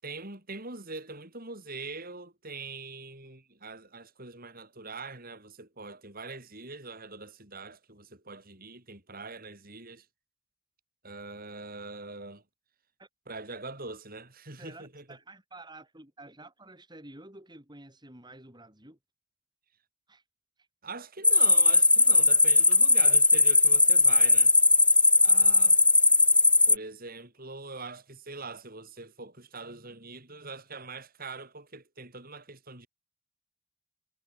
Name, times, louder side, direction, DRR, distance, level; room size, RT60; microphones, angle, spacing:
voice 1, 0.0-10.1 11.0-12.4 13.3-15.0 20.8-24.5 25.2-25.8 26.7-32.9, right 3 dB, 40° right, 6.3 m, -43 dB
voice 2, 14.5-19.0 20.1-20.2 20.6-20.7, right 2 dB, 20° right, 4.4 m, -50 dB
sound 1, 21.2-26.7, left 3 dB, 5° left, 0.4 m, -19 dB
head